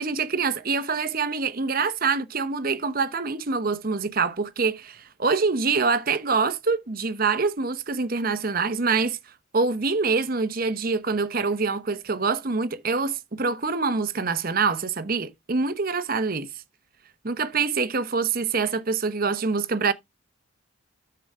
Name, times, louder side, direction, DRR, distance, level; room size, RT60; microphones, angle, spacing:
voice 1, 0.0-9.2 9.5-16.5 17.2-19.9, right 4 dB, 45° right, 0.8 m, -25 dB
10.0 x 6.8 x 3.6 m
head